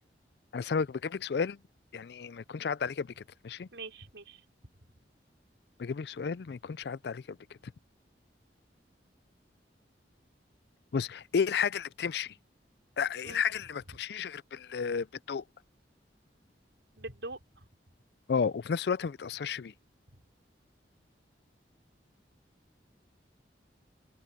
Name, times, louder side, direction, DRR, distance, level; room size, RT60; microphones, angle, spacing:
voice 1, 0.5-1.6 1.9-3.7 5.8-7.4 10.9-12.3 13.0-15.4 18.3-19.7, left 6 dB, 65° left, 0.4 m, -32 dB
voice 2, 3.7-4.4 13.2-13.4 17.0-17.6, right 2 dB, 90° right, 5.2 m, -43 dB
open air
head